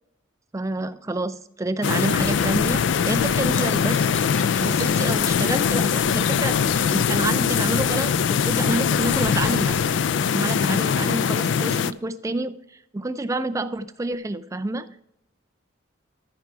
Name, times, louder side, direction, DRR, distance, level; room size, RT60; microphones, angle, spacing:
voice 1, 0.5-2.8 3.1-4.0 4.6-9.8 10.3-12.6 12.9-15.0, right 2 dB, 15° right, 10 dB, 0.4 m, -28 dB
sound 1, 1.8-11.9, left 7 dB, 70° left, 0.3 m, -22 dB
sound 2, 2.1-10.1, equal, 10° left, 0.9 m, -42 dB
14.0 x 4.7 x 4.6 m, 0.81 s
head